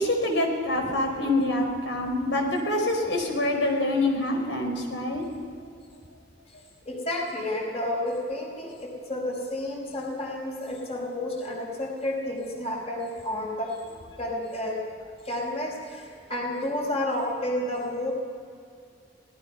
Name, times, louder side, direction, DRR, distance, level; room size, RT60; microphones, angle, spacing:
voice 1, 0.0-5.2, left 1 dB, 90° left, 3 dB, 4.6 m, -26 dB
voice 2, 6.8-13.8 14.2-14.8 15.2-18.1, left 1 dB, 35° left, 0 dB, 4.8 m, -31 dB
25.0 x 18.5 x 5.7 m, 2.2 s
head